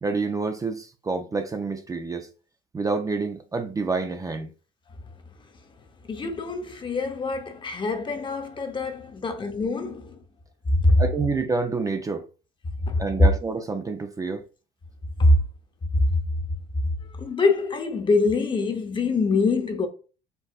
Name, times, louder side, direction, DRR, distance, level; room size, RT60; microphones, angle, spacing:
voice 1, 0.0-2.3 2.7-4.5 11.0-12.3 13.0-14.4, right 4 dB, 20° right, 0.5 m, -28 dB
voice 2, 6.1-10.2 10.7-11.0 12.9-13.0 15.2-15.4 16.1-16.2 17.2-19.9, left 2 dB, 30° left, 0.8 m, -24 dB
4.6 x 3.8 x 2.4 m
cardioid pair, 110°, 17 cm